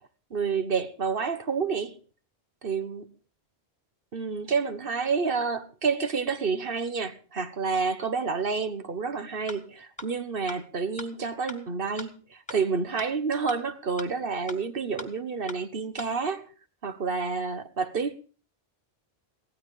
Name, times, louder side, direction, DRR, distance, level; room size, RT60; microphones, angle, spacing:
voice 1, 0.3-2.0 2.6-3.1 4.1-16.5 16.8-18.1, right 5 dB, 60° right, 1.6 m, -29 dB
sound 1, 9.5-9.6 10.0-10.1 10.5-10.6 11.0-11.1 11.5-11.6 12.0-12.1 12.5-12.6 13.0-13.1 13.5-13.6 14.0-14.1 14.5-14.6 15.0-15.1 15.5-15.6 16.0-16.1, left 3 dB, 5° left, 1.9 m, -38 dB
17.5 x 13.5 x 5.0 m
omnidirectional pair, 1.0 m